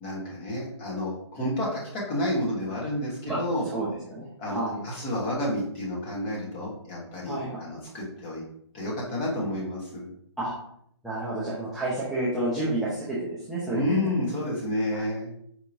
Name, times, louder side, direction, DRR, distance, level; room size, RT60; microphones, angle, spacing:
voice 1, 0.0-3.6 4.4-8.4 8.7-10.1 13.6-15.3, left 1 dB, 20° left, -4 dB, 1.1 m, -30 dB
voice 2, 3.7-4.8 7.2-7.6 10.4-10.5 11.0-14.1 14.9-15.0, right 1 dB, ahead, -10 dB, 0.4 m, -30 dB
4.6 x 2.8 x 2.6 m, 0.69 s
hypercardioid pair, 155°, 15 cm